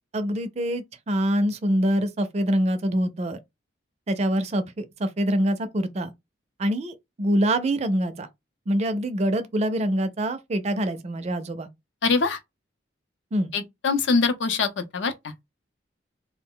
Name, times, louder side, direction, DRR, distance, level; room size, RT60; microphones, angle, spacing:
voice 1, 0.1-3.4 4.1-6.1 6.6-8.3 8.7-11.7 13.3-13.5, equal, 35° right, 0.4 m, -25 dB
voice 2, 12.0-12.4 13.5-15.1, left 4 dB, 80° left, 0.6 m, -23 dB
2.3 x 2.0 x 3.6 m
head